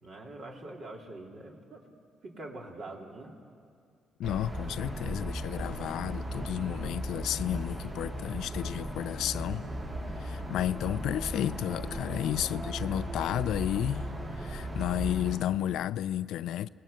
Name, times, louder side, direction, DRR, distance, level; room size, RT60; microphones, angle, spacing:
voice 1, 0.0-1.9 2.2-3.4 12.4-12.7, right 2 dB, 55° right, 3.5 m, -44 dB
voice 2, 4.2-9.6 10.2-14.1 14.4-16.7, left 12 dB, 85° left, 0.5 m, -32 dB
sound 1, 4.2-15.4, equal, 40° right, 6.7 m, -36 dB
29.0 x 19.5 x 6.7 m
cardioid pair, 90°, 0 cm